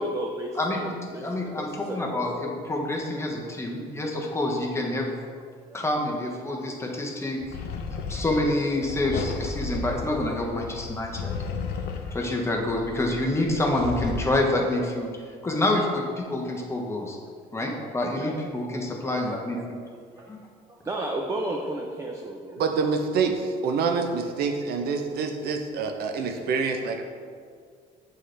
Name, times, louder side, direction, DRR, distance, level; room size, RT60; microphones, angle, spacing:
voice 1, 0.0-0.9 1.1-2.5 5.3-5.4 5.7-5.8 7.9-8.2 9.6-9.7 11.8-11.9 16.5-16.6 17.0-17.1 17.6-17.7 18.1-18.3 18.7-18.8 20.2-20.3 20.8-22.6 26.6-26.8, right 1 dB, 20° right, 1 dB, 0.5 m, -34 dB
voice 2, 0.6-5.1 5.7-7.4 8.1-11.4 12.1-15.1 15.4-17.2 17.5-19.6 20.3-20.4, left 1 dB, 15° left, -1 dB, 0.9 m, -27 dB
sound 1, 7.4-14.4, left 5 dB, 70° left, 0.6 m, -34 dB
voice 3, 22.6-27.0, right 5 dB, 70° right, 5 dB, 0.6 m, -26 dB
7.5 x 3.8 x 3.3 m, 2.1 s
cardioid pair, 110°, 17 cm